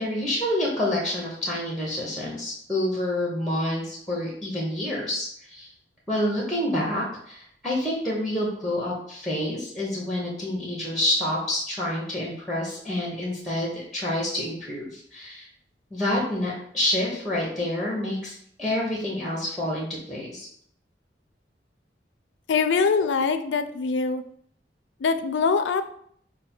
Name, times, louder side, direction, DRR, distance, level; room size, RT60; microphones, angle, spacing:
voice 1, 0.0-5.7 6.1-15.5 15.9-20.5, left 1 dB, ahead, -3 dB, 0.8 m, -28 dB
voice 2, 22.5-24.2 25.0-25.8, left 5 dB, 80° left, 10 dB, 0.4 m, -23 dB
5.0 x 2.2 x 4.3 m, 0.65 s
head